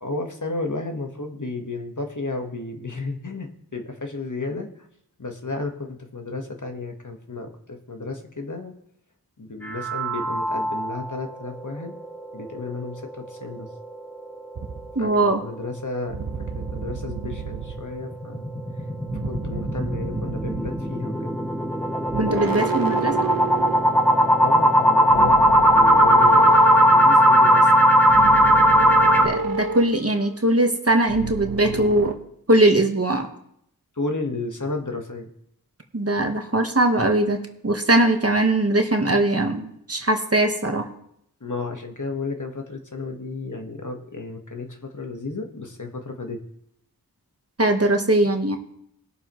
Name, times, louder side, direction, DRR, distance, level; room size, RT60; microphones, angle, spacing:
voice 1, 0.0-4.7 5.2-8.7 9.4-11.9 12.3-13.7 15.0-16.2 16.5-18.5 19.3-21.3 24.4-27.7 34.0-35.3 41.4-46.4, left 3 dB, 55° left, 3 dB, 1.5 m, -33 dB
sound 1, 9.6-11.1 11.5-11.6 12.0-12.1 12.5-12.6 17.4-29.3, equal, 5° left, 1.3 m, -18 dB
sound 2, 14.6-15.0 16.1-18.0 19.1-21.0 22.1-24.5 25.1-27.4 28.1-30.4 31.1-32.1, right 4 dB, 65° right, 1.0 m, -31 dB
voice 2, 15.0-15.4 22.2-23.3 29.2-32.1 32.5-33.3 35.9-40.9 47.6-48.6, right 1 dB, 40° right, 4 dB, 1.3 m, -21 dB
20.0 x 6.9 x 3.1 m, 0.74 s
wide cardioid pair, 40°, 37 cm